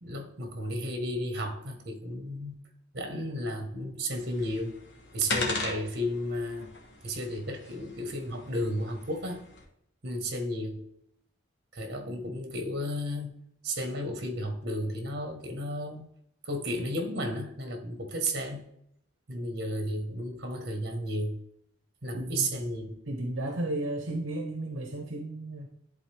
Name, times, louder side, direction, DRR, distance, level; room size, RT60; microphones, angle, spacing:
voice 1, 0.0-2.6 2.9-4.8 5.1-6.7 7.0-9.4 10.0-10.8 11.7-13.3 13.6-16.0 16.4-18.6 19.3-21.4 22.0-23.0, equal, 55° right, 4 dB, 1.4 m, -33 dB
sound 1, 4.1-9.6, left 3 dB, 65° left, 1.5 m, -38 dB
voice 2, 22.1-22.5 23.1-25.7, right 1 dB, 75° right, 3 dB, 0.9 m, -33 dB
11.0 x 4.0 x 3.4 m, 0.73 s
head